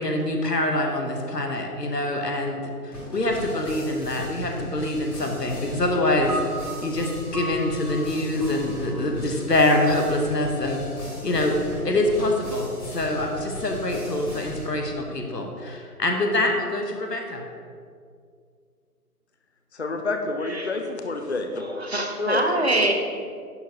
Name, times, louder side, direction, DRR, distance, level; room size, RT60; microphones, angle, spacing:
voice 1, 0.0-10.8 11.2-11.6 11.8-17.4, left 1 dB, 85° left, 2 dB, 1.2 m, -25 dB
sound 1, 2.9-14.6, left 1 dB, 15° left, 1.5 m, -37 dB
sound 2, 6.3-12.7, right 1 dB, 75° right, 1.5 m, -39 dB
voice 2, 19.7-21.6 22.2-22.5, left 3 dB, 45° left, 5 dB, 0.5 m, -28 dB
voice 3, 21.6-22.9, right 2 dB, 45° right, 3 dB, 0.7 m, -24 dB
11.0 x 4.4 x 2.9 m, 2.2 s
figure-of-eight pair, 155°, 47 cm